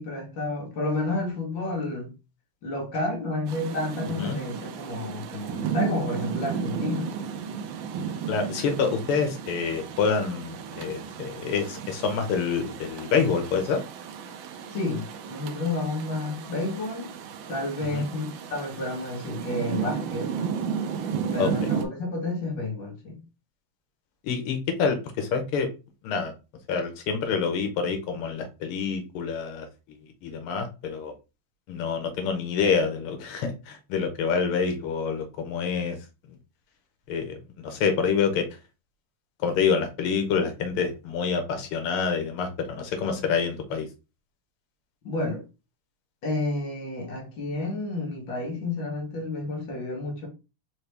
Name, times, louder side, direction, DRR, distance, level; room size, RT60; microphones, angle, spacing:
voice 1, 0.0-2.1 2.6-7.1 14.7-17.1 17.5-20.3 21.3-23.2 45.0-45.4 46.2-50.3, left 2 dB, 60° left, 1.9 m, -30 dB
Rain, 3.5-21.9, right 7 dB, 70° right, 1.2 m, -34 dB
voice 2, 8.3-13.8 17.9-18.1 21.4-21.7 24.2-25.7 26.0-26.3 26.7-29.7 30.2-31.1 31.7-36.0 37.1-38.5 39.4-43.9, left 5 dB, 80° left, 1.8 m, -27 dB
4.7 x 2.6 x 3.3 m
omnidirectional pair, 2.4 m